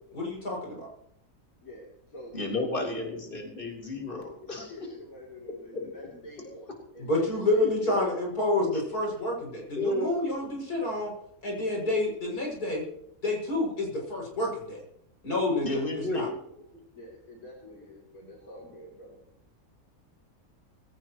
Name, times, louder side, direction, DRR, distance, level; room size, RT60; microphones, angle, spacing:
voice 1, 0.1-0.9 7.0-11.1 11.4-12.8 13.2-14.8 15.2-16.3, left 2 dB, 90° left, -1 dB, 7.1 m, -29 dB
voice 2, 1.6-3.3 4.4-8.1 16.5-16.6 16.9-19.2, left 1 dB, 70° left, -2 dB, 3.5 m, -46 dB
voice 3, 2.3-4.7 5.7-5.9 6.5-6.6 8.7-8.8 9.8-10.2 15.6-16.4, left 2 dB, 35° left, -1 dB, 3.9 m, -32 dB
20.5 x 17.0 x 3.1 m, 0.74 s
omnidirectional pair, 1.6 m